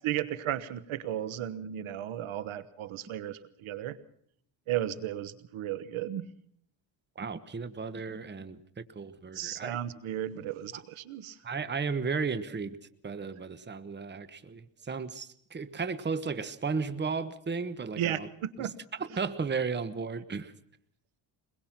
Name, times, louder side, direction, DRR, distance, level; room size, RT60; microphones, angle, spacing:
voice 1, 0.0-4.0 4.7-6.3 9.3-11.4 18.0-18.8, right 11 dB, 70° right, 15 dB, 1.3 m, -34 dB
voice 2, 7.2-9.8 10.7-10.8 11.4-12.8 13.0-18.3 18.6-18.7 19.0-20.5, right 5 dB, 20° right, 13 dB, 1.1 m, -34 dB
23.0 x 21.5 x 5.9 m, 0.65 s
cardioid pair, 100°, 50 cm